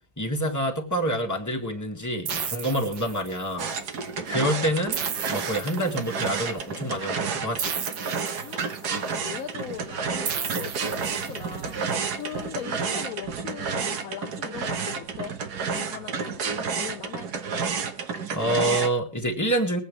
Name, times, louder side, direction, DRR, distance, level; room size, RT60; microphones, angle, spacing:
voice 1, 0.2-3.7 4.2-5.0 5.3-7.8 18.3-19.8, right 1 dB, 10° left, 1.9 m, -27 dB
sound 1, 2.3-3.6 4.9-6.3 7.6-9.0 10.3-11.6, right 7 dB, 85° right, 1.9 m, -33 dB
sound 2, 3.6-18.9, right 5 dB, 65° right, 1.7 m, -31 dB
voice 2, 8.4-11.8 12.2-15.4 15.7-17.3, left 9 dB, 60° left, 1.1 m, -39 dB
22.0 x 8.4 x 3.2 m
omnidirectional pair, 1.8 m